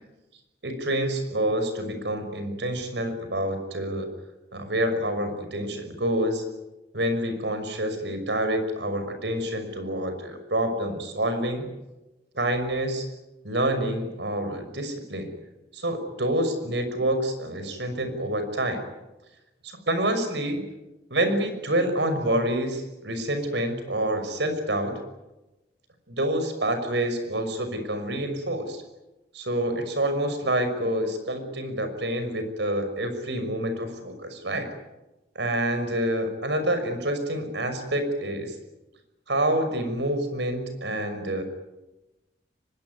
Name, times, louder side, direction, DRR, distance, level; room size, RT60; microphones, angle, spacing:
voice 1, 0.6-4.1 4.5-6.4 6.9-11.7 12.3-13.1 13.4-15.3 15.7-18.8 19.6-20.6 21.1-24.9 26.1-28.8 29.3-34.7 35.3-38.5 39.3-41.4, right 1 dB, 90° right, 8 dB, 6.0 m, -27 dB
24.5 x 21.0 x 9.6 m, 1.0 s
head